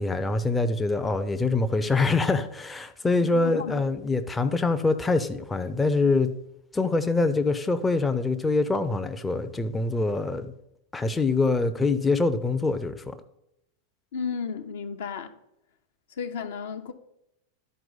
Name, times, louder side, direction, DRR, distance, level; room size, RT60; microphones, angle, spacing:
voice 1, 0.0-6.3 6.7-10.5 10.9-13.1, left 3 dB, 10° left, 0.5 m, -24 dB
voice 2, 3.2-3.7 14.1-15.3 16.2-16.9, left 6 dB, 60° left, 0.7 m, -33 dB
12.0 x 4.5 x 3.9 m
figure-of-eight pair, 90°, 0 cm